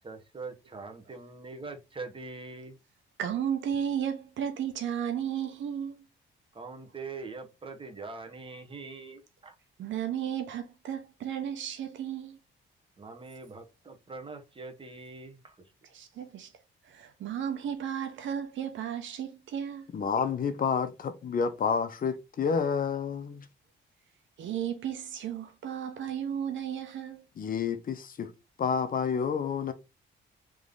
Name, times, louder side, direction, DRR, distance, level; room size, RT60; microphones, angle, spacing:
voice 1, 0.0-2.8 6.5-9.5 13.0-15.6, right 3 dB, 25° right, 1.2 m, -43 dB
voice 2, 3.2-6.1 9.8-12.4 15.9-16.5 16.9-19.9 24.4-27.2, right 9 dB, 75° right, 1.0 m, -34 dB
voice 3, 19.9-23.5 27.4-28.3 28.6-29.7, left 6 dB, 45° left, 0.7 m, -29 dB
3.6 x 3.1 x 3.8 m
cardioid pair, 90°, 20 cm